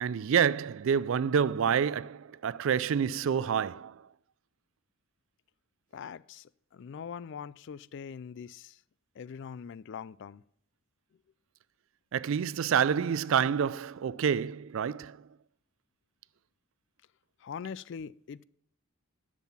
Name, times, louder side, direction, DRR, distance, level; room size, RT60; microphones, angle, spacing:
voice 1, 0.0-3.9 12.1-15.2, right 7 dB, 60° right, 0.3 m, -28 dB
voice 2, 5.9-8.8 9.2-10.4 17.4-18.4, left 6 dB, 55° left, 0.3 m, -42 dB
11.0 x 7.4 x 5.8 m
head